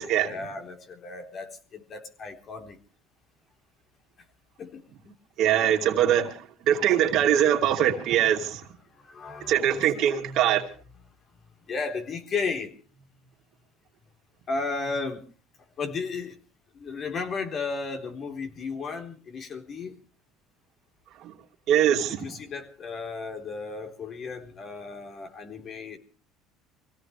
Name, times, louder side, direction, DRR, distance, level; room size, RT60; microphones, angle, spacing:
voice 1, 0.0-2.8 4.6-4.8 5.1-5.2 8.9-10.6 11.7-12.7 14.5-15.3 15.8-16.4 16.7-19.9 22.1-26.0, left 4 dB, 45° left, 3.9 m, -34 dB
voice 2, 5.4-8.6 9.5-10.7 21.2-21.3 21.7-22.2, right 10 dB, 60° right, 2.7 m, -22 dB
25.0 x 17.0 x 3.3 m
supercardioid pair, 95°, 0 cm